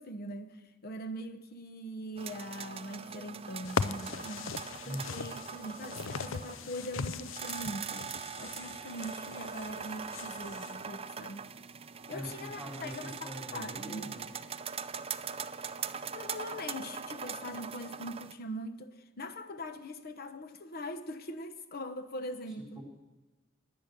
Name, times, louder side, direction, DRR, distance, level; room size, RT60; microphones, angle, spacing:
voice 1, 0.0-4.5 4.8-8.1 8.4-11.5 12.1-14.2 16.0-22.8, equal, 50° left, 10 dB, 1.0 m, -42 dB
sound 1, 2.2-18.3, right 6 dB, 30° right, 0.5 m, -42 dB
sound 2, 3.6-10.8, left 5 dB, 70° left, 0.6 m, -39 dB
voice 2, 4.8-5.1 12.1-14.3 22.8-22.9, equal, 5° right, 0 dB, 3.9 m, -42 dB
20.5 x 8.9 x 6.8 m, 1.1 s
head